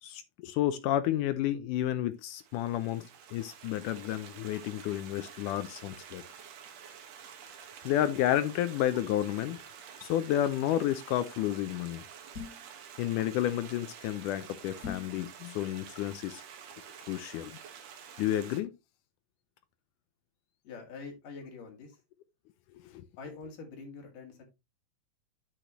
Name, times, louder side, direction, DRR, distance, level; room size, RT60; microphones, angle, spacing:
voice 1, 0.0-6.2 7.8-9.6 10.0-12.0 13.0-16.4 17.1-17.5 18.2-18.8 22.7-23.0, left 12 dB, 85° left, 1.8 m, -31 dB
Stream, 2.3-18.6, right 8 dB, 60° right, 1.9 m, -49 dB
sound 1, 12.3-12.7 14.8-15.2, left 6 dB, 25° left, 2.4 m, -41 dB
voice 2, 20.6-22.0 23.2-24.4, left 4 dB, 60° left, 3.9 m, -45 dB
8.7 x 6.8 x 3.0 m
omnidirectional pair, 4.3 m